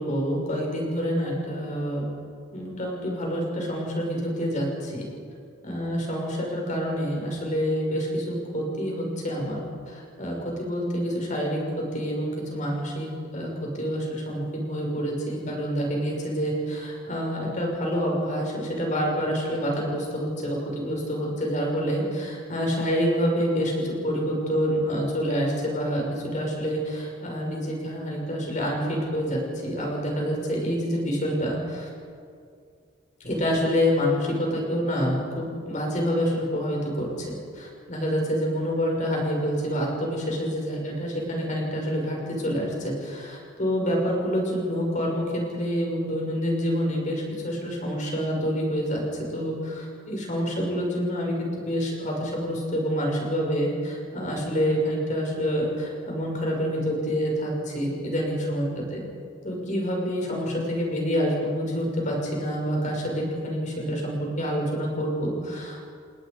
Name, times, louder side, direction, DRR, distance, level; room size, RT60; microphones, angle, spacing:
voice 1, 0.0-2.0 2.5-5.0 5.6-9.6 9.9-31.9 33.2-49.0 49.3-59.0 59.4-65.9, equal, 40° left, -1 dB, 6.2 m, -27 dB
29.0 x 19.5 x 5.4 m, 2.2 s
head